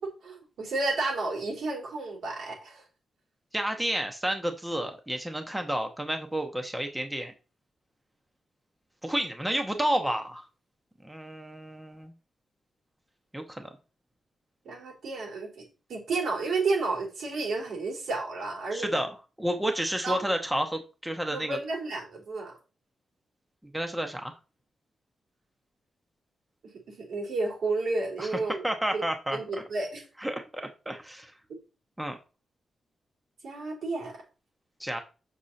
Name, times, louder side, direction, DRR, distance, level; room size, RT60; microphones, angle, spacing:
voice 1, 0.0-2.8 14.6-15.6 15.9-19.0 20.0-20.2 21.3-22.5 26.9-28.7 28.9-29.0 29.3-30.0 31.5-31.6 33.4-34.2, right 3 dB, 85° right, -2 dB, 4.2 m, -31 dB
voice 2, 3.5-7.3 9.0-10.5 11.0-12.1 13.3-13.7 18.7-21.6 23.7-24.3 28.2-29.6 30.2-31.3 32.0-32.2 34.8-35.0, right 1 dB, 5° right, 5 dB, 0.9 m, -31 dB
6.9 x 6.4 x 4.2 m, 0.33 s
wide cardioid pair, 155°, 0 cm